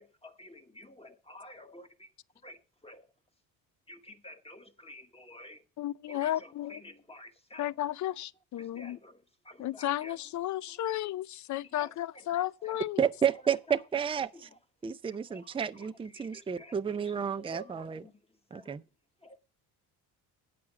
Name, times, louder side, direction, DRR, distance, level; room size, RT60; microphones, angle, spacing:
voice 1, 0.0-2.1 2.4-3.1 3.9-5.6 6.1-8.0 8.6-10.2 10.7-10.9 11.6-12.8 15.3-15.4 15.8-18.1 18.5-18.8 19.2-19.4, left 1 dB, 15° left, 1.2 m, -51 dB
voice 2, 5.8-6.8 7.6-9.0 9.6-13.0, left 13 dB, 45° left, 0.5 m, -33 dB
voice 3, 13.0-14.5 14.8-18.0 18.5-18.8, right 7 dB, 15° right, 0.5 m, -31 dB
8.6 x 5.9 x 7.4 m
supercardioid pair, 65°, 43 cm